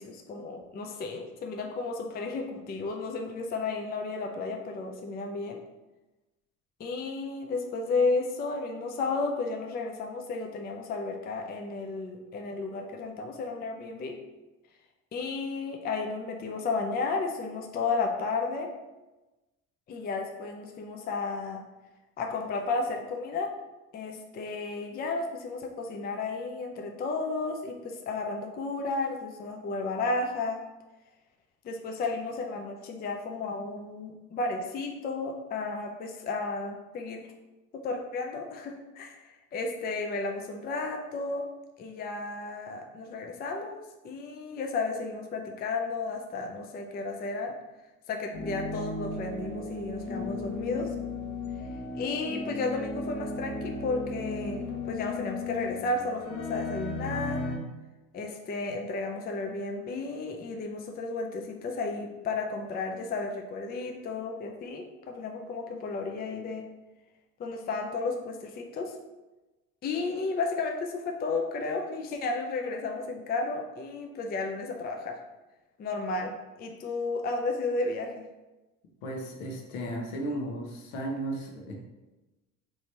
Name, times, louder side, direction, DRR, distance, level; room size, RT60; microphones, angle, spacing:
voice 1, 0.0-5.6 6.8-14.2 15.1-18.7 19.9-21.6 22.2-23.5 23.9-30.6 31.6-37.2 37.7-41.5 41.8-47.5 48.1-50.9 51.9-57.4 58.1-66.6 67.4-69.0 69.8-75.2 75.8-78.2, left 3 dB, 25° left, 2 dB, 0.4 m, -33 dB
sound 1, 48.3-57.6, left 2 dB, 40° left, 0.9 m, -35 dB
voice 2, 79.0-81.7, right 1 dB, 70° left, 1 dB, 0.9 m, -35 dB
3.3 x 2.9 x 2.8 m, 1.1 s
hypercardioid pair, 60°, 43 cm